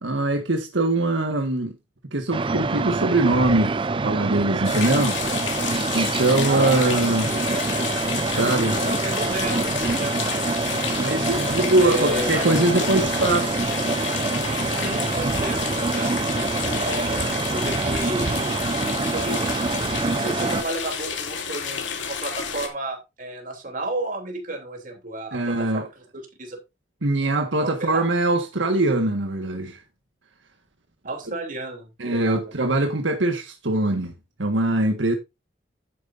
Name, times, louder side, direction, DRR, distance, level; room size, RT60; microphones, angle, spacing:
voice 1, 0.0-1.7 2.1-3.8 4.0-5.2 5.9-7.3 8.2-8.8 11.0-13.5 14.8-15.3 25.3-25.9 27.0-29.8 32.0-34.1 34.4-35.1, right 2 dB, 80° right, 1.6 m, -22 dB
sound 1, 2.3-20.6, right 3 dB, 25° right, 0.4 m, -26 dB
sound 2, 4.6-22.7, left 7 dB, 80° left, 2.4 m, -30 dB
voice 2, 6.5-7.8 8.8-10.2 11.0-13.3 14.7-16.1 16.6-18.6 19.0-25.9 26.1-26.6 27.6-28.1 31.0-32.5, right 2 dB, 45° right, 3.3 m, -32 dB
11.0 x 9.4 x 2.6 m
head